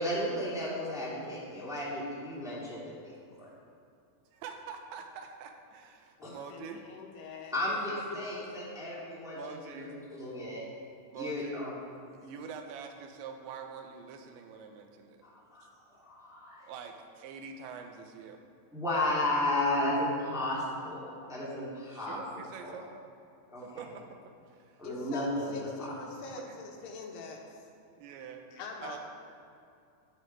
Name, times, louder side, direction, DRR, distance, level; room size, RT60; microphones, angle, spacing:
voice 1, 0.0-3.1 3.4-3.5 6.2-6.3 7.5-9.4 9.6-9.8 10.2-10.6 11.1-11.7 15.5-15.6 16.0-16.7 18.7-22.2 22.6-22.7 23.5-23.6 24.8-25.9, left 1 dB, ahead, -8 dB, 1.3 m, -33 dB
voice 2, 4.3-6.9 7.9-8.0 9.3-10.0 11.1-11.7 12.2-15.2 15.6-15.7 16.6-18.4 21.9-22.9 23.6-24.1 24.5-24.9 26.3-26.6 28.0-29.0, right 6 dB, 85° right, 5 dB, 3.2 m, -45 dB
voice 3, 6.2-7.5 7.9-8.2 24.8-27.6 28.5-29.0, left 4 dB, 75° left, 1 dB, 3.1 m, -44 dB
11.0 x 10.5 x 4.7 m, 2.5 s
omnidirectional pair, 5.1 m